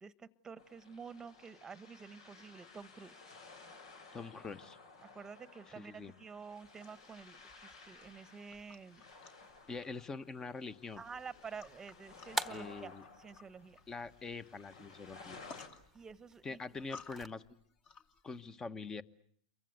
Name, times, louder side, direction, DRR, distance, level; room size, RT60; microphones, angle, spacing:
voice 1, 0.0-3.2 5.1-9.0 11.0-12.9 13.2-13.8 15.9-16.6, right 5 dB, 15° right, 16 dB, 1.3 m, -49 dB
sound 1, 0.6-15.7, left 3 dB, 70° left, 5.2 m, -56 dB
voice 2, 4.1-4.8 5.7-6.1 9.7-11.0 12.5-13.0 13.9-15.4 16.4-17.6 18.2-19.0, left 4 dB, 15° left, 14 dB, 1.3 m, -44 dB
sound 2, 6.6-18.4, left 5 dB, 35° left, 2.8 m, -59 dB
sound 3, 10.9-17.3, right 2 dB, ahead, 1.4 m, -47 dB
29.0 x 23.5 x 8.2 m, 0.62 s
hypercardioid pair, 100°, 3 cm